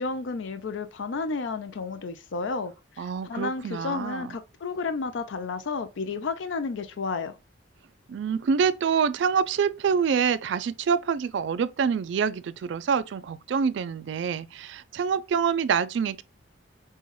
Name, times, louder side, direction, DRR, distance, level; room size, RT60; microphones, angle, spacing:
voice 1, 0.0-7.4, left 4 dB, 70° left, 0.4 m, -32 dB
voice 2, 3.0-4.3 8.1-16.2, right 6 dB, 60° right, 0.3 m, -26 dB
5.4 x 2.2 x 3.0 m
head